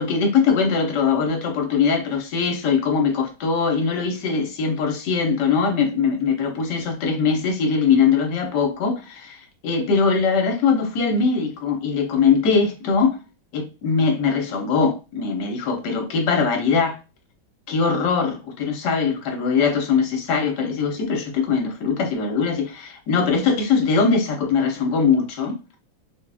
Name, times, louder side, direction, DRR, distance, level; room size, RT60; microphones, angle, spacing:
voice 1, 0.0-13.2 13.5-17.0 17.7-25.6, left 5 dB, 65° left, 1.3 m, -21 dB
3.7 x 2.4 x 3.3 m
omnidirectional pair, 2.1 m